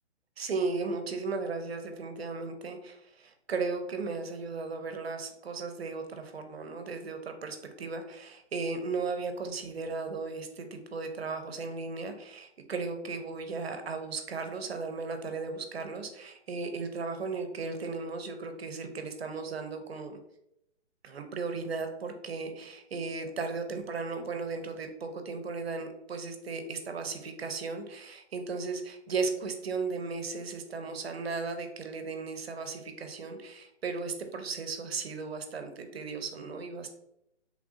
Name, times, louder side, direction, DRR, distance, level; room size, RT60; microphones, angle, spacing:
voice 1, 0.4-20.2 21.0-36.9, right 4 dB, 60° right, 6 dB, 0.5 m, -36 dB
3.3 x 2.5 x 2.3 m, 0.81 s
hypercardioid pair, 170°, 35 cm